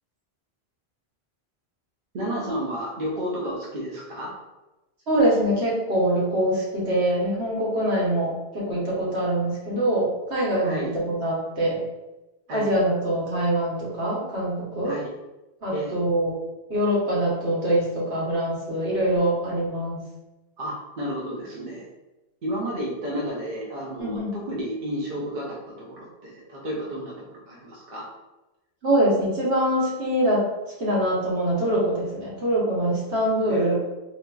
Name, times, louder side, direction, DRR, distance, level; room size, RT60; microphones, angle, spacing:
voice 1, 2.1-4.3 10.6-10.9 12.5-12.7 14.8-15.1 15.7-15.9 20.6-21.9 22.4-28.1 33.5-33.7, equal, 55° right, -4 dB, 0.9 m, -32 dB
voice 2, 5.1-10.8 11.2-11.8 12.5-14.9 15.6-16.3 16.7-20.0 24.0-24.3 28.8-30.4 30.8-33.7, right 1 dB, 80° right, -6 dB, 1.4 m, -24 dB
3.9 x 3.0 x 2.3 m, 1.0 s
omnidirectional pair, 1.1 m